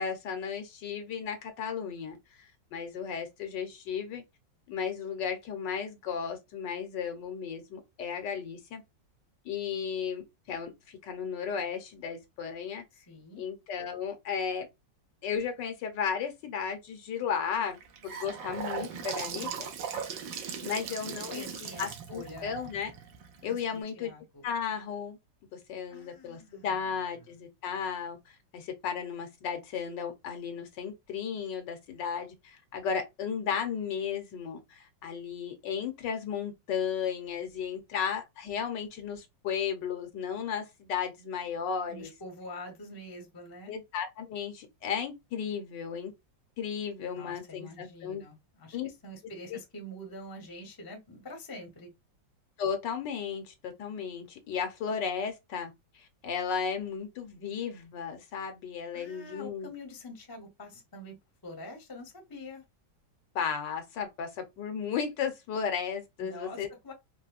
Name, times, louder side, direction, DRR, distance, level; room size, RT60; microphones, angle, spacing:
voice 1, 0.0-4.2 4.7-8.8 9.4-12.8 13.4-14.7 15.2-17.8 18.0-19.7 20.6-21.4 21.8-22.9 23.4-24.1 24.4-25.2 25.5-42.1 43.7-46.1 46.6-48.2 48.7-48.9 49.5-49.6 52.6-59.7 63.3-66.9, left 7 dB, 75° left, 1.4 m, -34 dB
voice 2, 12.9-13.4 20.3-20.7 21.0-22.6 23.4-24.5 25.9-26.8 27.2-27.3 41.9-43.7 47.1-51.9 58.9-61.2 61.4-62.6 66.2-66.9, left 1 dB, 15° left, 0.7 m, -46 dB
Gurgling / Sink (filling or washing) / Bathtub (filling or washing), 17.7-23.8, right 7 dB, 85° right, 1.4 m, -39 dB
4.1 x 2.2 x 2.4 m
omnidirectional pair, 2.0 m